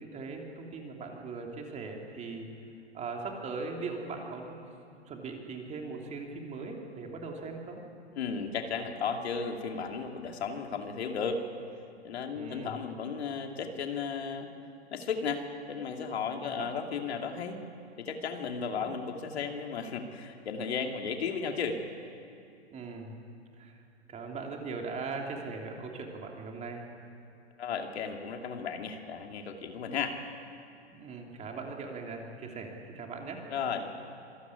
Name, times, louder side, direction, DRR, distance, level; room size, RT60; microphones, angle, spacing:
voice 1, 0.0-2.5 2.9-4.6 5.1-7.8 12.3-12.7 16.4-16.7 18.6-18.9 22.7-23.2 23.6-23.8 24.1-26.9 30.9-33.5, right 4 dB, 20° right, 1 dB, 3.3 m, -40 dB
voice 2, 8.2-11.4 12.0-14.5 14.9-17.6 18.0-21.8 27.6-30.1 33.5-33.9, left 6 dB, 65° left, 4 dB, 2.6 m, -34 dB
26.0 x 15.5 x 9.8 m, 2.7 s
hypercardioid pair, 125°, 34 cm